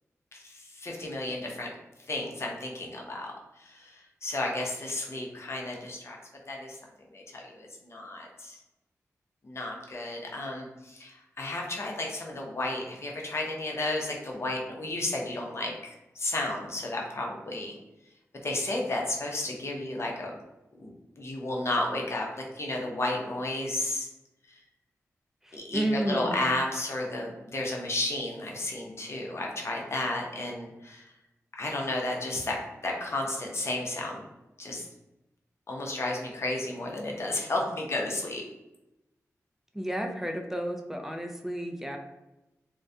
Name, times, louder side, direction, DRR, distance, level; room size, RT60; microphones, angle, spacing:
voice 1, 0.3-1.7 2.1-6.2 6.5-6.8 7.1-8.6 9.4-17.7 18.4-20.3 20.8-24.1 24.5-24.6 25.5-31.1 31.5-34.2 34.6-34.9 35.7-38.4, left 2 dB, 50° left, -1 dB, 0.6 m, -33 dB
voice 2, 25.4-26.4 39.7-42.0, right 1 dB, 5° right, 3 dB, 0.4 m, -32 dB
2.3 x 2.1 x 2.6 m, 0.97 s
cardioid pair, 60°, 6 cm